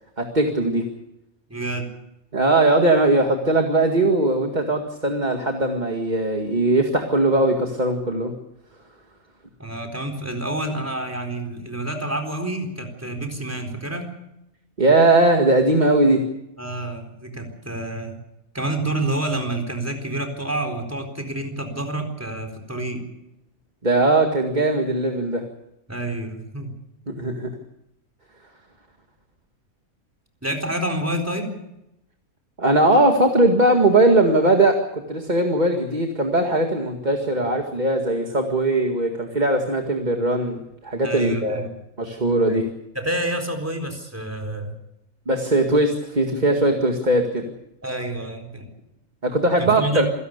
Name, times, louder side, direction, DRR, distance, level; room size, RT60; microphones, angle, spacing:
voice 1, 0.2-0.9 2.3-8.3 14.8-16.2 23.8-25.4 27.1-27.5 32.6-41.7 42.0-42.7 45.3-47.4 49.2-50.1, right 2 dB, 30° right, 3 dB, 2.1 m, -19 dB
voice 2, 1.5-1.9 9.6-14.1 16.6-18.2 18.5-23.0 25.9-26.7 27.3-27.4 30.4-31.5 41.0-41.7 42.5-42.7 42.9-44.8 47.8-48.7 49.6-50.1, right 1 dB, 10° right, 3 dB, 4.2 m, -28 dB
27.0 x 17.5 x 6.7 m, 0.86 s
omnidirectional pair, 1.5 m